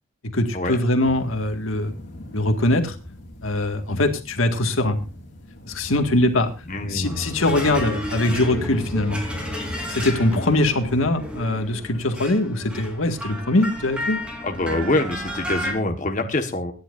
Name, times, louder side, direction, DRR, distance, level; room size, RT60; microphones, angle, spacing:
voice 1, 0.3-1.9 2.3-3.0 3.4-5.0 5.7-6.5 6.8-9.2 9.9-14.2, left 1 dB, 85° left, 6 dB, 1.9 m, -22 dB
sound 1, 1.0-11.1, left 1 dB, 55° left, 4.6 m, -38 dB
voice 2, 6.7-7.3 14.4-16.7, left 2 dB, 40° left, 5 dB, 1.5 m, -25 dB
sound 2, 7.0-15.7, equal, 5° right, 3.6 m, -33 dB
24.0 x 10.5 x 2.6 m, 0.31 s
head